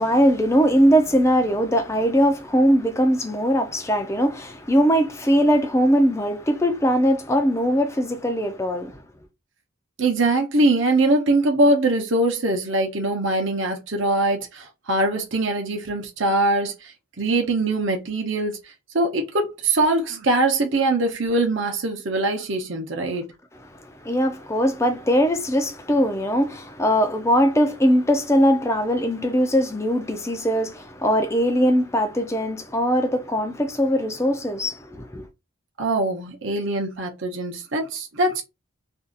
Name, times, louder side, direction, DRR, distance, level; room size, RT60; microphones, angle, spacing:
voice 1, 0.0-9.0 24.0-35.2, equal, 15° left, 0.5 m, -20 dB
voice 2, 10.0-23.3 35.8-38.4, right 2 dB, 60° right, 0.8 m, -22 dB
2.7 x 2.4 x 3.7 m
head